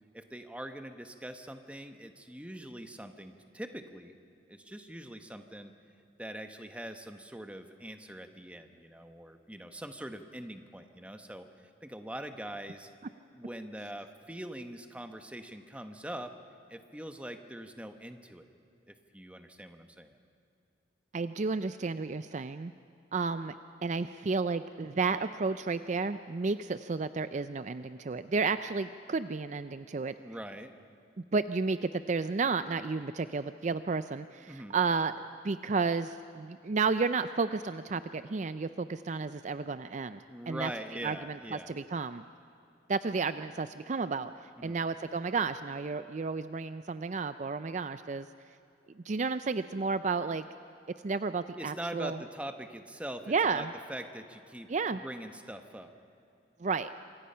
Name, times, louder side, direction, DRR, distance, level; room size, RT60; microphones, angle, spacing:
voice 1, 0.1-4.1 4.5-5.7 6.2-12.9 13.3-16.3 16.7-18.5 18.9-20.2 30.2-30.7 34.5-34.8 40.3-41.8 44.6-44.8 51.5-54.7 55.0-55.9, right 1 dB, 5° right, 7 dB, 1.1 m, -43 dB
voice 2, 21.1-22.7 23.1-23.5 23.8-30.1 31.3-35.1 35.4-40.7 41.0-42.2 42.9-48.3 49.0-50.5 51.0-52.2 53.3-53.7 54.7-55.0 56.6-56.9, right 4 dB, 40° right, 12 dB, 0.4 m, -32 dB
27.0 x 24.5 x 5.7 m, 2.6 s
head